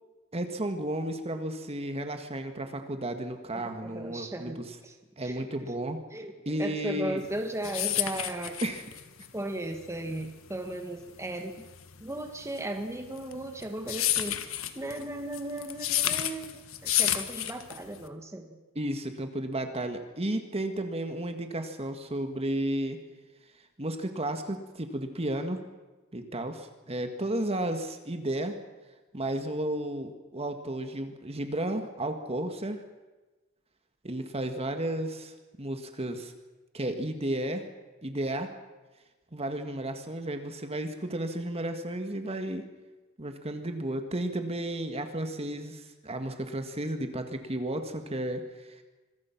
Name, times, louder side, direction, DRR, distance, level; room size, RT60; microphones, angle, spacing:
voice 1, 0.3-4.8 5.2-6.0 6.4-7.2 8.6-8.8 18.7-23.0 23.8-25.6 26.1-28.6 29.1-32.8 34.0-36.3 36.7-37.7 38.0-38.5 39.3-42.6 43.2-48.8, right 1 dB, 30° right, 6 dB, 1.8 m, -33 dB
voice 2, 3.8-4.9 5.2-5.5 6.1-8.6 9.3-11.7 12.0-18.6, right 1 dB, 15° right, 5 dB, 1.8 m, -36 dB
sound 1, 7.3-18.1, left 12 dB, 75° left, 1.5 m, -31 dB
26.5 x 22.0 x 6.0 m, 1.2 s
head